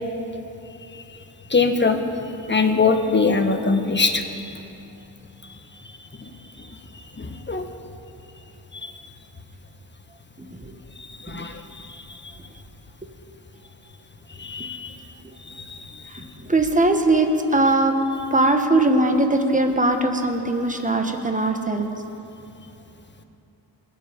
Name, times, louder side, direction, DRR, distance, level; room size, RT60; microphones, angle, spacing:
voice 1, 1.5-2.0 2.5-4.6 5.4-5.5 6.2-6.3 6.6-7.6 8.7-8.9 11.1-12.3 14.4-15.0 15.4-16.2, left 4 dB, 25° left, 6 dB, 1.3 m, -24 dB
voice 2, 16.1-18.0 18.3-21.9, right 2 dB, 15° right, 5 dB, 1.5 m, -20 dB
20.5 x 7.3 x 5.2 m, 2.9 s
cardioid pair, 55°, 44 cm